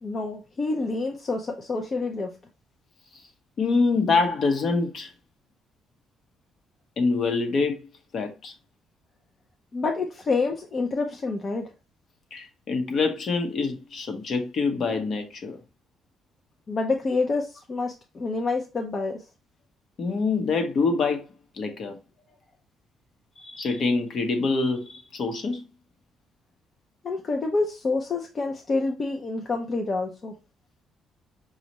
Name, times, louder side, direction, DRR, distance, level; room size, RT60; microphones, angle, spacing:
voice 1, 0.0-2.3 9.7-11.7 16.7-19.2 27.0-30.3, left 3 dB, 35° left, 0.6 m, -27 dB
voice 2, 3.6-5.1 7.0-7.9 8.1-8.5 12.3-15.6 20.0-21.3 21.5-22.0 23.4-25.6, left 4 dB, 55° left, 0.9 m, -25 dB
5.2 x 2.4 x 2.9 m
cardioid pair, 120°, 0 cm